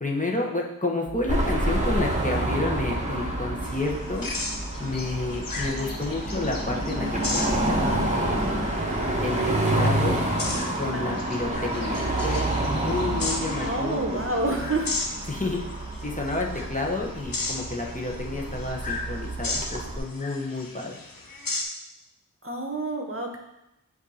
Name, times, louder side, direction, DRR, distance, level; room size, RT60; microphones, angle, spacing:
voice 1, 0.0-4.3 4.8-8.6 9.2-10.2 10.8-14.6 15.3-15.6 16.0-21.0, left 2 dB, 25° left, -2 dB, 1.0 m, -30 dB
sound 1, 1.1-10.3, equal, 5° right, 0.7 m, -41 dB
Car passing by / Traffic noise roadway noise / Engine, 1.3-20.0, right 1 dB, 20° right, 1.2 m, -28 dB
sound 2, 3.6-21.6, left 3 dB, 80° left, 0.9 m, -36 dB
voice 2, 10.9-11.3 13.6-14.9 22.4-23.4, right 2 dB, 40° right, 1 dB, 0.9 m, -28 dB
7.9 x 2.7 x 5.6 m, 0.88 s
wide cardioid pair, 40°, 33 cm